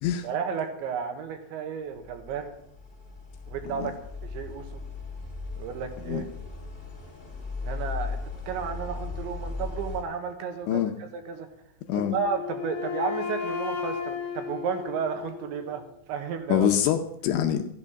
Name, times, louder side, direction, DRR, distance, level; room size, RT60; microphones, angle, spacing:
voice 1, 0.2-2.6 3.5-3.9 4.2-4.8 5.6-6.2 7.6-8.2 8.5-10.8 11.1-11.5 11.9-15.8 16.1-16.7, right 6 dB, 75° right, 3.3 m, -32 dB
sound 1, 1.9-10.0, left 4 dB, 20° left, 1.4 m, -37 dB
Wind instrument woodwind instrument, 11.9-15.9, left 6 dB, 55° left, 2.7 m, -34 dB
voice 2, 16.5-17.7, left 10 dB, 80° left, 2.9 m, -25 dB
14.0 x 11.5 x 5.8 m
omnidirectional pair, 5.9 m